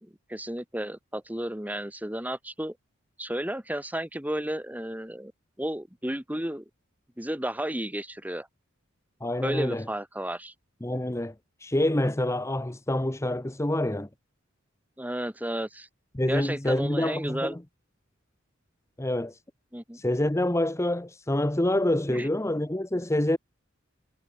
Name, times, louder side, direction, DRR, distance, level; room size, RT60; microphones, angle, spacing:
voice 1, 0.0-2.8 3.2-5.3 5.6-6.6 7.2-8.5 9.4-10.5 15.0-15.9 16.3-17.6 19.7-20.0 22.1-22.3, right 1 dB, 10° right, 2.3 m, -33 dB
voice 2, 9.2-9.8 10.8-11.3 11.6-14.1 16.1-17.6 19.0-19.4 19.9-23.4, left 1 dB, 15° left, 0.9 m, -27 dB
head